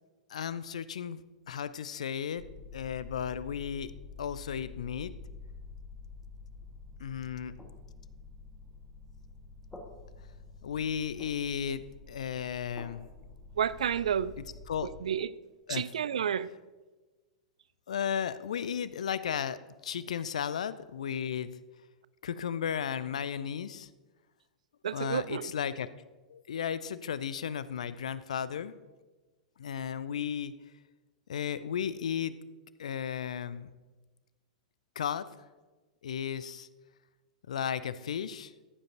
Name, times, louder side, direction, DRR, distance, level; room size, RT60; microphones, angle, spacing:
voice 1, 0.3-2.4 2.7-3.9 4.2-5.1 7.0-7.5 10.6-13.1 14.7-14.9 15.7-15.8 17.9-21.5 22.2-23.9 24.9-25.9 26.3-28.7 29.6-30.5 31.3-32.4 32.8-33.7 35.0-35.3 36.0-36.7 37.5-38.5, left 8 dB, 65° left, 0.4 m, -34 dB
sound 1, 2.4-15.0, left 3 dB, 10° left, 1.7 m, -48 dB
voice 2, 13.6-14.4 15.0-15.3 15.7-16.5 24.8-25.5, right 8 dB, 65° right, 0.3 m, -30 dB
14.5 x 7.7 x 2.8 m
figure-of-eight pair, 100°, 4 cm